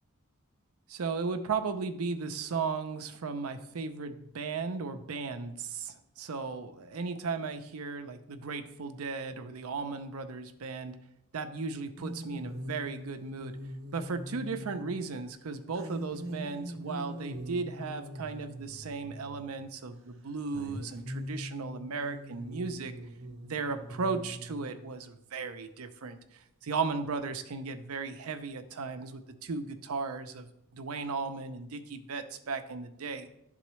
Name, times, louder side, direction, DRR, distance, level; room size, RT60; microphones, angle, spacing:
voice 1, 0.9-11.0 11.3-13.6 13.9-22.9 23.4-30.5 30.7-33.3, right 4 dB, 85° right, 8 dB, 0.6 m, -36 dB
sound 1, 12.0-15.0 15.7-19.7 20.5-24.9 27.0-27.1, equal, 60° right, 0.8 m, -42 dB
11.0 x 3.8 x 3.1 m, 0.79 s
head